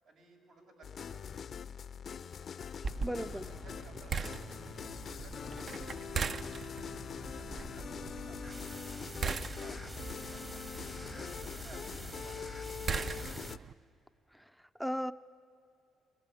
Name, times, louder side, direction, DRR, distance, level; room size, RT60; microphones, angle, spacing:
voice 1, 0.0-1.5 3.2-4.4 5.0-8.8 9.3-12.9, right 2 dB, 80° right, 0 dB, 6.4 m, -58 dB
sound 1, 0.8-13.6, left 7 dB, 50° left, 0.5 m, -43 dB
voice 2, 2.8-3.5 14.3-14.4 14.8-15.1, equal, ahead, 12 dB, 0.5 m, -36 dB
sound 2, 2.8-13.7, right 5 dB, 50° right, 0.6 m, -41 dB
sound 3, 8.4-13.5, right 2 dB, 25° right, 1.2 m, -50 dB
23.0 x 21.0 x 9.8 m, 2.7 s
cardioid pair, 90°, 0 cm